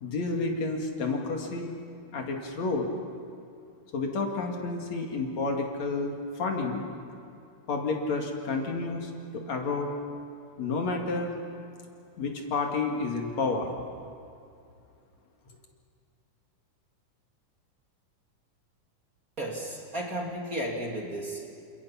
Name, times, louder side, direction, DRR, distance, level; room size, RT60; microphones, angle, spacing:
voice 1, 0.0-1.7 2.1-2.9 3.9-6.9 7.7-9.9 10.6-11.3 12.2-13.7 14.0-14.1, left 3 dB, 60° left, 1 dB, 3.4 m, -30 dB
voice 2, 19.4-21.5, right 1 dB, 30° right, -1 dB, 2.8 m, -34 dB
29.5 x 26.5 x 5.9 m, 2.5 s
omnidirectional pair, 3.5 m